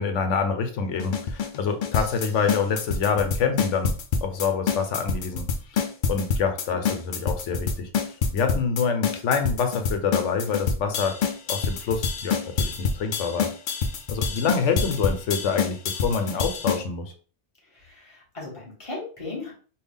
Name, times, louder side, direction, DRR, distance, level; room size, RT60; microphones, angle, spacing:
voice 1, 0.0-3.9 4.2-7.9 8.3-11.2 11.5-13.5 14.1-17.1, left 5 dB, 80° left, 7 dB, 1.0 m, -26 dB
sound 1, 1.0-16.8, left 5 dB, 60° left, 0.5 m, -26 dB
voice 2, 17.6-19.5, left 3 dB, 25° left, -5 dB, 1.6 m, -37 dB
3.5 x 2.3 x 3.5 m, 0.40 s
omnidirectional pair, 1.2 m